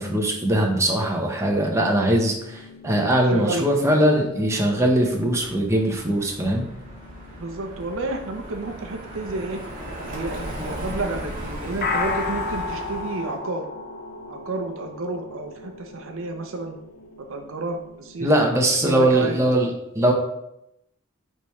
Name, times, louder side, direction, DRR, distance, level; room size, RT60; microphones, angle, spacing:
voice 1, 0.0-6.6 18.2-19.7 19.9-20.1, right 1 dB, 15° right, 0 dB, 1.0 m, -21 dB
sound 1, 1.7-19.5, left 3 dB, 45° left, 0.6 m, -37 dB
voice 2, 3.3-3.7 7.4-9.6 10.1-13.7 14.3-16.8 17.2-18.3 18.8-19.4, right 2 dB, 65° right, 5 dB, 0.7 m, -31 dB
Car passing by, 5.0-13.4, equal, 40° right, 2.4 m, -36 dB
9.0 x 3.6 x 3.1 m, 0.81 s
head